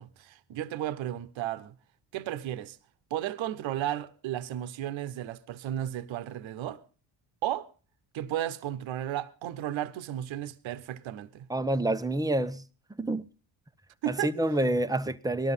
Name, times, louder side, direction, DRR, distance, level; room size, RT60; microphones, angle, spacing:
voice 1, 0.0-1.7 2.1-2.8 3.1-6.8 7.4-7.7 8.1-11.5 14.0-14.3, right 12 dB, 75° right, 1.2 m, -34 dB
voice 2, 11.5-12.6 13.0-13.3 14.1-15.5, right 1 dB, 10° right, 1.0 m, -28 dB
19.0 x 13.0 x 5.6 m
supercardioid pair, 75°, 47 cm